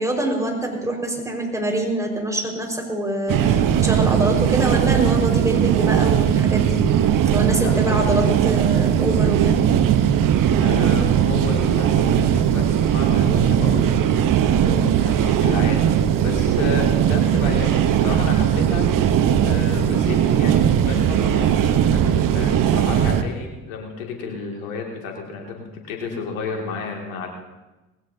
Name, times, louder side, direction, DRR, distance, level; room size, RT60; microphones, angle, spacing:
voice 1, 0.0-6.8 7.3-9.6 14.6-14.9, right 1 dB, 10° right, 1 dB, 5.0 m, -25 dB
sound 1, 3.3-23.2, right 9 dB, 50° right, 1.0 m, -18 dB
voice 2, 7.5-8.3 10.5-14.1 15.0-19.1 19.4-27.3, left 5 dB, 80° left, 1 dB, 2.5 m, -32 dB
19.5 x 17.0 x 2.8 m, 1.1 s
hypercardioid pair, 55°, 40 cm